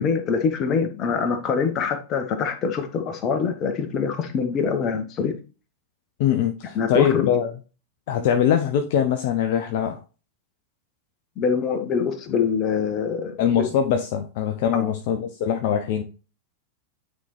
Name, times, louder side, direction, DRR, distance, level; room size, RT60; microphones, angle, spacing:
voice 1, 0.0-5.4 6.7-7.3 11.4-13.7 14.7-14.9, left 6 dB, 30° left, 1.2 m, -24 dB
voice 2, 6.2-7.5 8.1-10.0 13.4-16.0, left 8 dB, 50° left, 0.6 m, -22 dB
9.3 x 4.3 x 3.3 m
figure-of-eight pair, 90°, 0 cm